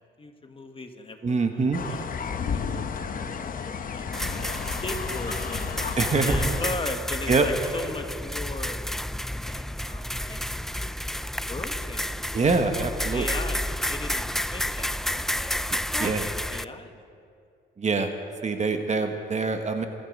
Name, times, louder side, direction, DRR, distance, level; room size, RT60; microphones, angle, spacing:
voice 1, 0.2-2.1 2.5-3.0 3.6-4.1 4.7-8.8 9.4-10.9 11.5-12.3 13.0-16.0 16.3-17.0, left 3 dB, 25° left, 5 dB, 1.5 m, -38 dB
voice 2, 1.2-1.8 6.0-6.5 7.3-7.5 12.3-13.2 16.0-16.3 17.8-18.1 18.4-19.9, right 4 dB, 35° right, 6 dB, 1.3 m, -24 dB
sound 1, 1.7-6.8, left 6 dB, 45° left, 0.9 m, -32 dB
sound 2, 4.1-16.6, left 1 dB, ahead, 0.3 m, -30 dB
25.5 x 9.3 x 5.4 m, 2.4 s
cardioid pair, 90°, 20 cm